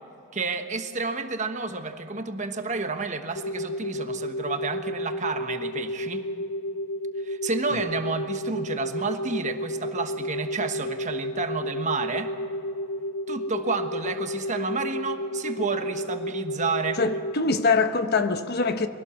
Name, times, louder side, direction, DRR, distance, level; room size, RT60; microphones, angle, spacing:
voice 1, 0.3-6.3 7.2-12.3 13.3-17.0, right 3 dB, 35° right, 1.2 m, -30 dB
sound 1, 3.3-17.4, left 1 dB, 90° left, 0.6 m, -32 dB
voice 2, 17.0-18.9, left 4 dB, 50° left, 1.0 m, -23 dB
23.0 x 17.0 x 7.2 m
head